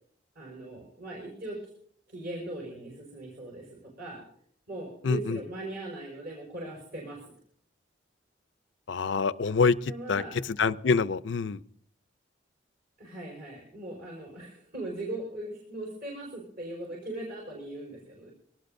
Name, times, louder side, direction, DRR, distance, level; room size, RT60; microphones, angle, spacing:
voice 1, 0.4-1.6 2.1-4.3 4.7-7.3 9.9-10.4 13.0-18.3, right 2 dB, 60° right, -3 dB, 5.2 m, -39 dB
voice 2, 5.0-5.4 8.9-11.6, left 5 dB, 75° left, 16 dB, 0.5 m, -26 dB
23.5 x 18.5 x 2.7 m, 0.65 s
head